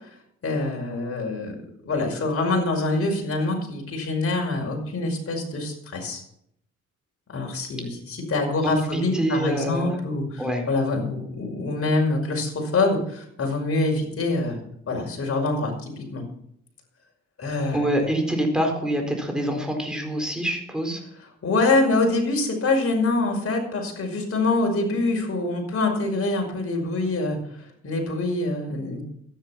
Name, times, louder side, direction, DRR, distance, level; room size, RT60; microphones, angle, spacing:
voice 1, 0.4-1.6 1.8-6.2 7.3-14.6 14.9-16.2 17.4-17.9 21.4-29.0, left 2 dB, 50° left, 1 dB, 5.5 m, -25 dB
voice 2, 8.6-9.9 10.4-10.7 17.7-21.0, right 1 dB, ahead, 3 dB, 4.3 m, -25 dB
12.5 x 10.5 x 5.9 m, 0.71 s
cardioid pair, 90°, 30 cm